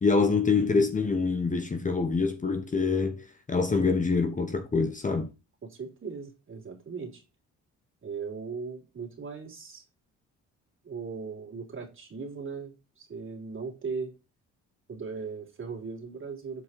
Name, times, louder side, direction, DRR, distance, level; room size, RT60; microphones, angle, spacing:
voice 1, 0.0-5.3, left 4 dB, 25° left, 1.1 m, -25 dB
voice 2, 5.6-7.2 8.0-9.8 10.8-14.1 14.9-16.6, right 5 dB, 40° right, 3.3 m, -38 dB
8.1 x 4.8 x 4.3 m
cardioid pair, 90°, 30 cm